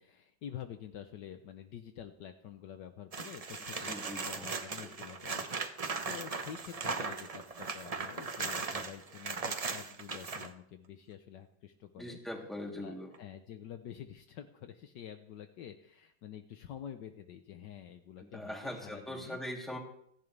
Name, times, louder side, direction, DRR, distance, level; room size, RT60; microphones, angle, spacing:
voice 1, 0.0-12.2 12.6-19.4, left 9 dB, 70° left, 7 dB, 1.4 m, -48 dB
sound 1, 3.1-10.5 13.1-13.2, right 4 dB, 70° right, 0.3 m, -38 dB
voice 2, 3.8-4.5 4.8-4.9 12.0-13.1 18.2-19.8, equal, ahead, -1 dB, 2.9 m, -42 dB
29.5 x 11.0 x 3.4 m, 0.71 s
omnidirectional pair, 2.1 m